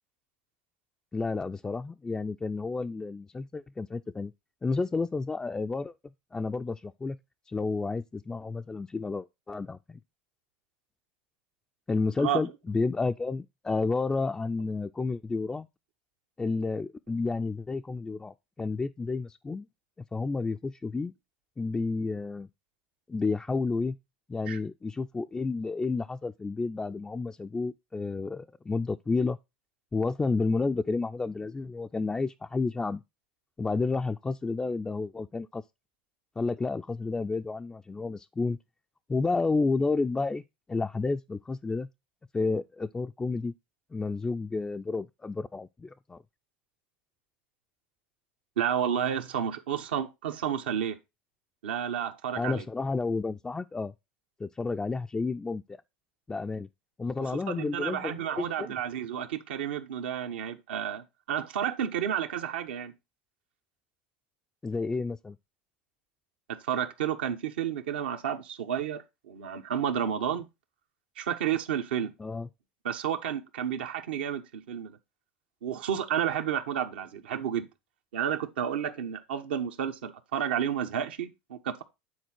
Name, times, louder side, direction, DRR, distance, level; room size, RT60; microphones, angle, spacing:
voice 1, 1.1-4.3 4.6-5.9 6.3-7.2 7.5-10.0 11.9-15.7 16.4-19.7 20.1-21.1 21.6-22.5 23.1-24.0 24.3-29.4 29.9-33.0 33.6-35.6 36.4-38.6 39.1-40.4 40.7-41.9 42.3-43.5 43.9-46.2 52.4-53.9 54.4-55.8 56.3-56.7 57.0-58.7 64.6-65.4 72.2-72.5, left 3 dB, 15° left, 0.3 m, -31 dB
voice 2, 48.6-51.0 51.6-52.7 57.2-62.9 66.5-70.5 71.2-72.1 72.8-75.0 75.6-77.7 78.1-81.8, right 9 dB, 85° right, 1.1 m, -31 dB
9.3 x 4.0 x 4.5 m
supercardioid pair, 105°, 5 cm